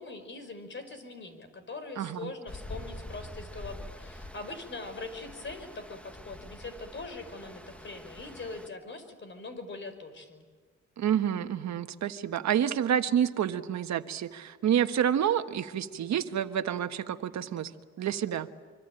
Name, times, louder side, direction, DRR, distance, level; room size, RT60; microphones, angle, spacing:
voice 1, 0.0-10.4, left 3 dB, 40° left, 10 dB, 5.0 m, -42 dB
voice 2, 2.0-2.3 11.0-17.7 18.0-18.5, right 9 dB, 65° right, 9 dB, 1.4 m, -28 dB
Stream, 2.5-8.7, left 1 dB, 5° left, 1.6 m, -45 dB
25.5 x 25.5 x 9.0 m, 1.5 s
cardioid pair, 90°, 30 cm